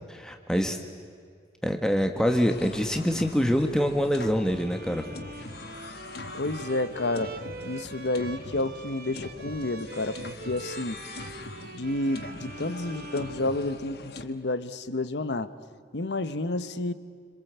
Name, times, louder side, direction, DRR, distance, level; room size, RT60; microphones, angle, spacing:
voice 1, 0.1-0.8 1.6-5.1, equal, 5° left, 5 dB, 1.4 m, -25 dB
sound 1, 2.2-14.2, left 2 dB, 65° left, 1.4 m, -43 dB
Bowed string instrument, 4.4-14.2, right 3 dB, 55° right, 1.7 m, -43 dB
voice 2, 6.3-7.3 7.7-11.0 11.7-15.5 15.9-16.9, left 2 dB, 80° left, 12 dB, 1.1 m, -30 dB
26.5 x 26.5 x 8.1 m, 2.1 s
head